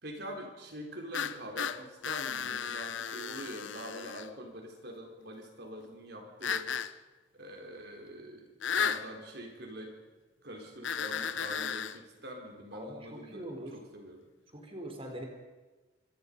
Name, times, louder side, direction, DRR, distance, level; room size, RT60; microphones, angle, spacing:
voice 1, 0.0-6.8 7.3-10.0 10.4-14.3, equal, 60° right, 2 dB, 4.5 m, -45 dB
sound 1, 1.1-4.3 6.4-6.9 8.6-9.1 10.8-12.0, left 7 dB, 85° left, 1.0 m, -34 dB
voice 2, 12.7-13.8 14.5-15.2, right 1 dB, 30° right, 2 dB, 4.3 m, -42 dB
27.0 x 26.0 x 5.5 m, 1.2 s
head